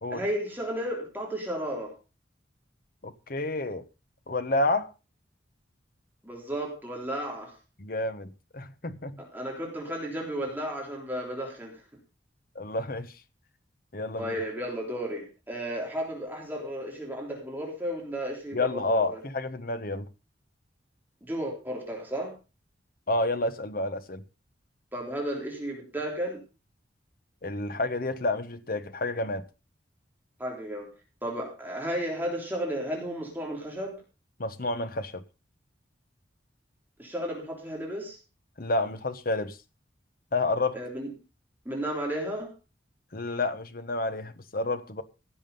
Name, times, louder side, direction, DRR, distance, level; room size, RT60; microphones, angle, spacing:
voice 1, 0.1-1.9 6.2-7.5 9.2-11.8 14.2-19.2 21.2-22.3 24.9-26.4 30.4-30.9 31.2-33.9 37.0-38.2 40.7-41.1 41.7-42.5, equal, 10° right, 3.5 m, -33 dB
voice 2, 3.0-3.8 4.3-4.9 7.8-9.2 12.5-13.1 13.9-14.3 18.5-20.1 23.1-24.2 27.4-29.4 34.4-35.2 38.6-39.6 40.3-40.8 43.1-45.0, left 2 dB, 50° left, 1.2 m, -29 dB
16.0 x 7.4 x 5.4 m
head